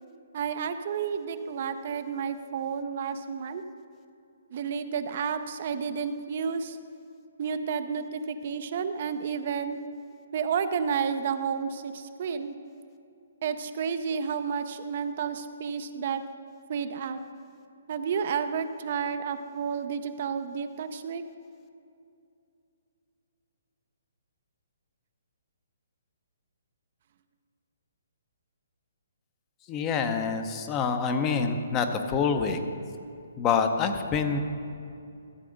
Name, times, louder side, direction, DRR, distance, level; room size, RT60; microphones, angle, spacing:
voice 1, 0.3-3.6 4.5-6.8 7.4-9.8 10.3-12.5 13.4-16.2 16.7-17.2 17.9-21.2, right 6 dB, 50° right, 9 dB, 0.5 m, -31 dB
voice 2, 29.7-32.6 33.4-34.4, left 5 dB, 25° left, 7 dB, 0.7 m, -26 dB
13.5 x 7.6 x 3.9 m, 2.5 s
hypercardioid pair, 145°, 0 cm